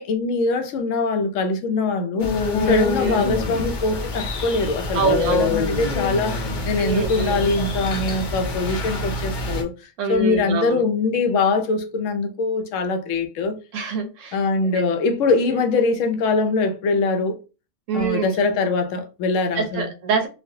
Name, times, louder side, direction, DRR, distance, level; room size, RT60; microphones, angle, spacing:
voice 1, 0.0-2.3 2.7-9.7 10.1-13.6 14.3-17.4 17.9-19.9, left 3 dB, 80° left, 0.9 m, -22 dB
sound 1, 2.2-9.6, left 3 dB, 50° left, 0.6 m, -26 dB
voice 2, 2.6-3.2 4.9-5.6 6.8-7.4 10.0-10.8 13.7-14.4 14.6-14.8 17.9-18.3 19.5-20.3, right 5 dB, 75° right, 1.0 m, -25 dB
3.1 x 2.3 x 2.6 m
omnidirectional pair, 1.3 m